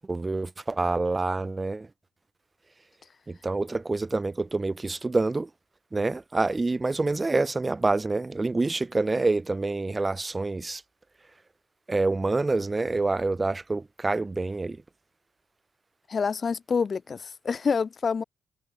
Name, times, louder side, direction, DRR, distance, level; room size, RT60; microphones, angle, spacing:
voice 1, 0.1-1.9 3.3-5.5 5.9-10.8 11.9-14.8, right 3 dB, 20° right, 1.3 m, -27 dB
voice 2, 16.1-18.2, left 5 dB, 40° left, 0.8 m, -27 dB
cardioid pair, 90°, 0 cm